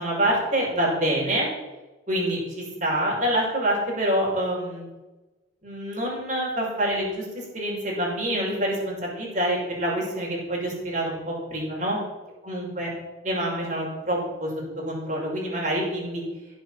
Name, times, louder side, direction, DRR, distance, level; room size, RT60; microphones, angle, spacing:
voice 1, 0.0-1.5 2.1-4.9 5.6-7.2 7.5-12.0 12.4-12.9 13.2-14.5 14.8-16.2, right 1 dB, 40° right, -3 dB, 5.6 m, -26 dB
16.0 x 7.5 x 7.5 m, 1.1 s
head